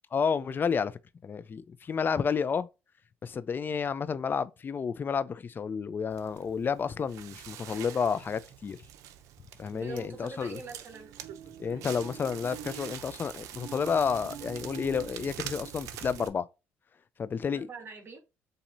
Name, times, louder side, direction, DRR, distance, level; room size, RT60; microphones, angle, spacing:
voice 1, 0.1-2.7 3.2-8.8 9.6-10.6 11.6-16.5 17.2-17.7, left 6 dB, 40° left, 0.5 m, -31 dB
Crackle, 6.1-16.3, right 10 dB, 75° right, 0.6 m, -44 dB
voice 2, 9.7-11.1 17.5-18.2, right 4 dB, 45° right, 1.5 m, -43 dB
7.1 x 2.8 x 2.7 m
supercardioid pair, 75°, 5 cm